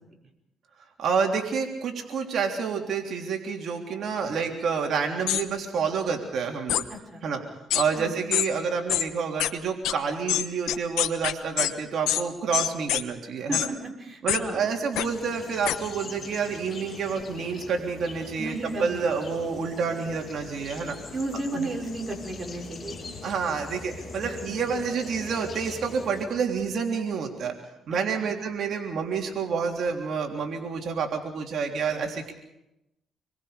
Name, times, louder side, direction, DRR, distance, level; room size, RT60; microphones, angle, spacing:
voice 1, 1.0-6.8 7.2-7.4 7.7-13.7 14.2-21.0 21.5-21.7 23.2-27.6 27.9-32.3, right 5 dB, 65° right, 2 dB, 3.4 m, -28 dB
sound 1, 5.3-5.4 6.7-6.8 7.7-7.8 8.3-8.5 8.9-9.0 9.4-9.5 9.8-9.9 10.3-11.7 12.1-12.2 12.5-13.0 13.5-13.7 14.3-14.4 15.0-15.1 15.6-15.8, left 12 dB, 90° left, 1.1 m, -25 dB
voice 2, 6.9-7.2 8.0-8.2 13.5-14.7 18.4-19.1 21.1-23.0 24.2-24.4 28.2-28.3, right 2 dB, 30° right, 1 dB, 5.5 m, -34 dB
sound 2, 14.9-26.3, left 3 dB, 35° left, 7.5 m, -42 dB
27.5 x 22.5 x 5.2 m, 0.89 s
cardioid pair, 90°, 0 cm